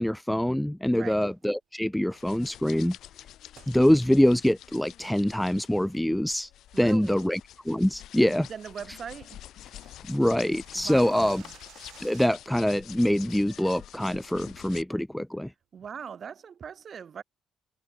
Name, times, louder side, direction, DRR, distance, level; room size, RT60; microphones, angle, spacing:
voice 1, 0.0-3.0 3.7-6.5 6.8-7.4 7.7-8.5 10.1-11.4 12.0-15.5, equal, 5° left, 0.5 m, -24 dB
sound 1, 1.2-1.5 3.5-3.8 4.2-4.3 4.9-5.1 5.5-5.8 6.2-6.5 6.8-6.9 7.3-7.6 7.9-8.0 8.3-8.4 8.6-8.7 9.0-12.6, right 12 dB, 80° right, 7.3 m, -54 dB
sound 2, 2.1-14.8, left 12 dB, 80° left, 4.4 m, -48 dB
voice 2, 6.7-7.3 8.2-9.4 10.7-11.5 15.7-17.2, right 7 dB, 50° right, 2.3 m, -41 dB
cardioid pair, 90°, 0 cm